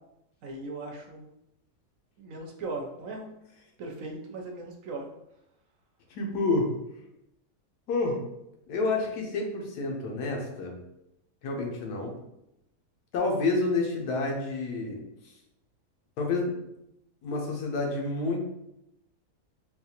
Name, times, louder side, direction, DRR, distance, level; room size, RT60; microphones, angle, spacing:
voice 1, 0.4-1.3 2.2-3.3 3.8-5.1, right 2 dB, 65° right, 2 dB, 0.9 m, -38 dB
voice 2, 6.1-6.7 7.9-8.2 8.7-10.8 11.4-12.2 13.1-15.0 15.2-15.3 16.2-16.5 17.2-18.4, left 3 dB, 80° left, 1 dB, 1.3 m, -29 dB
4.0 x 2.3 x 2.8 m, 0.83 s
omnidirectional pair, 1.7 m